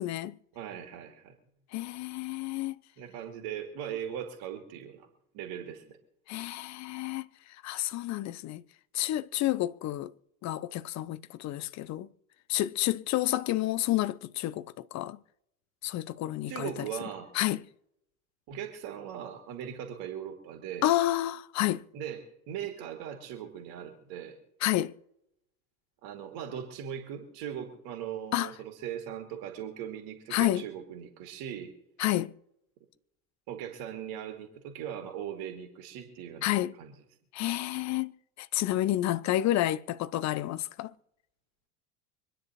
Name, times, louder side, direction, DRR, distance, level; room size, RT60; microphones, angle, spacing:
voice 1, 0.0-0.4 1.7-2.8 6.3-7.3 7.6-8.6 8.9-10.1 10.4-12.1 12.5-15.2 15.8-16.9 17.3-17.6 20.8-21.8 24.6-24.9 28.3-28.5 30.3-30.6 32.0-32.3 36.4-36.7 37.3-40.9, left 15 dB, 40° left, 0.7 m, -30 dB
voice 2, 0.5-1.3 3.0-5.1 5.3-6.0 16.5-17.3 18.5-20.9 21.9-24.4 26.0-31.7 33.5-36.5 36.8-36.9, right 9 dB, 55° right, 2.5 m, -39 dB
25.5 x 10.0 x 3.0 m
figure-of-eight pair, 75°, 45 cm